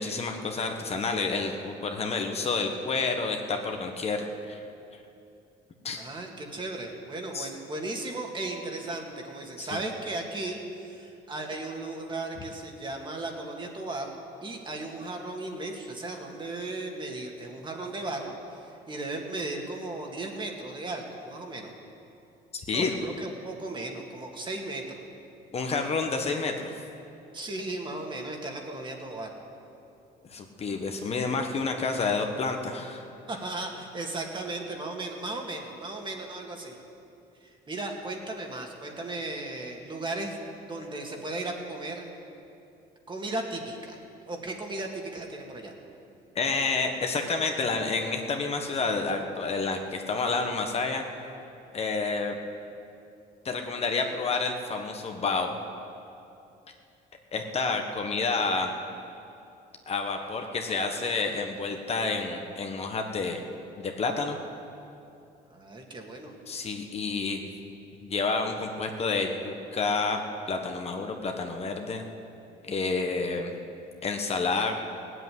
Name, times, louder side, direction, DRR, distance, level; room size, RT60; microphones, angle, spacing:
voice 1, 0.0-4.6 5.8-6.0 7.3-7.5 9.6-9.8 22.7-23.0 25.5-26.8 30.3-33.1 46.3-51.0 51.7-52.4 53.4-55.6 57.3-58.7 59.9-63.4 63.8-64.4 66.5-67.4 68.0-70.2 70.5-72.0 72.6-73.5 74.0-74.7, left 4 dB, 35° left, 3 dB, 1.4 m, -29 dB
voice 2, 6.0-14.1 14.4-21.7 22.7-25.0 27.3-29.4 33.3-36.8 37.4-40.4 40.6-42.1 43.1-44.0 44.3-45.7 65.5-66.3, right 2 dB, 30° right, 1 dB, 2.3 m, -36 dB
18.0 x 8.1 x 9.6 m, 2.7 s
cardioid pair, 110°, 17 cm